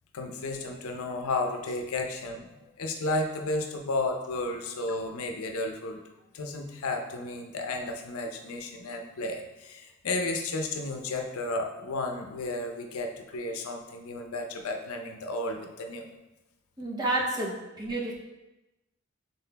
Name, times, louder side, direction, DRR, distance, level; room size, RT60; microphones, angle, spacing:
voice 1, 0.1-6.0 6.3-16.0 17.5-17.6, left 2 dB, 85° left, 3 dB, 0.5 m, -33 dB
voice 2, 16.8-18.1, right 2 dB, 20° right, -2 dB, 0.5 m, -30 dB
5.6 x 3.7 x 2.2 m, 1.0 s
head